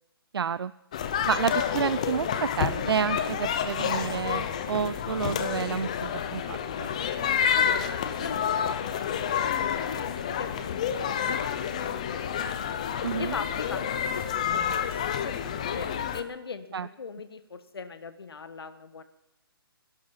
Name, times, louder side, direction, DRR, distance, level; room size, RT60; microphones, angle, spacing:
voice 1, 0.3-0.7 1.3-6.9 13.0-13.3 16.7-16.9, right 7 dB, 75° right, 17 dB, 0.4 m, -30 dB
sound 1, 0.9-16.2, left 8 dB, 15° left, 0.5 m, -29 dB
voice 2, 7.5-12.7 13.2-19.0, left 5 dB, 75° left, 11 dB, 1.4 m, -41 dB
17.5 x 11.5 x 5.5 m, 0.90 s
hypercardioid pair, 175°, 13 cm